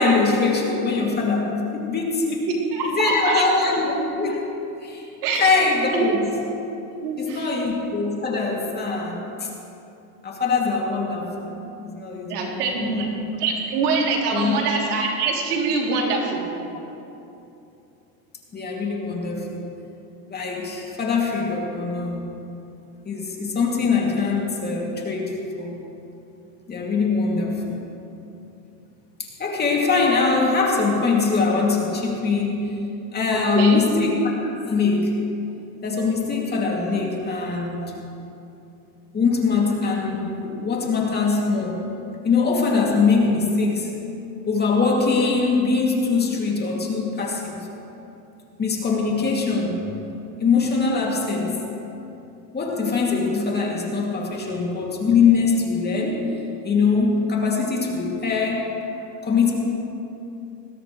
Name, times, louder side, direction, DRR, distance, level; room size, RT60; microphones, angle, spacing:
voice 1, 0.0-2.5 2.8-4.4 4.8-5.1 5.4-6.3 7.2-9.5 10.2-13.0 14.3-14.6 18.5-19.6 20.3-22.4 23.0-25.8 26.7-27.9 29.2-32.7 33.1-34.1 34.6-35.1 35.8-37.9 39.1-41.8 42.2-43.9 44.5-47.6 48.6-49.8 50.4-51.6 52.5-56.3 56.6-58.7 59.2-59.5, left 4 dB, 20° left, -2 dB, 2.6 m, -22 dB
voice 2, 2.7-3.4 5.2-5.4 5.9-6.0 7.0-7.5 12.3-16.5 33.3-33.8, right 4 dB, 90° right, -1 dB, 3.2 m, -24 dB
20.5 x 16.5 x 3.2 m, 2.8 s
supercardioid pair, 130°, 45 cm